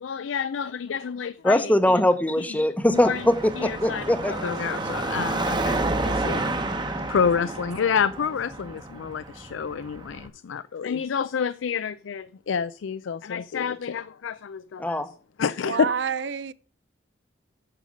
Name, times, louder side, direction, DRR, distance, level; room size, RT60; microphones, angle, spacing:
voice 1, 0.0-1.6 2.9-3.2 3.6-6.4 7.1-15.0 15.4-15.9, left 6 dB, 90° left, 0.4 m, -28 dB
voice 2, 1.4-4.4 14.8-15.1, left 1 dB, 10° left, 0.8 m, -22 dB
Car passing by / Traffic noise roadway noise / Engine, 2.9-10.3, right 2 dB, 25° right, 0.9 m, -30 dB
voice 3, 7.1-7.5 15.6-16.5, right 7 dB, 65° right, 0.5 m, -30 dB
8.8 x 6.6 x 5.1 m
head